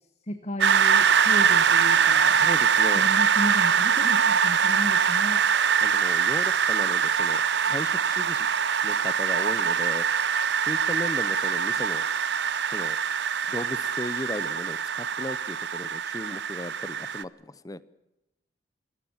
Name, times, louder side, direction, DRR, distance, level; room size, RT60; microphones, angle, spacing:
voice 1, 0.3-2.4 2.9-5.4, equal, 35° left, 9 dB, 1.3 m, -34 dB
sound 1, 0.6-17.2, right 7 dB, 65° right, 0.7 m, -23 dB
voice 2, 2.3-3.1 5.8-8.5 8.8-10.1 10.6-12.0 12.6-13.0 13.5-17.8, left 1 dB, 20° left, 18 dB, 0.8 m, -36 dB
27.0 x 17.0 x 7.3 m, 0.94 s
head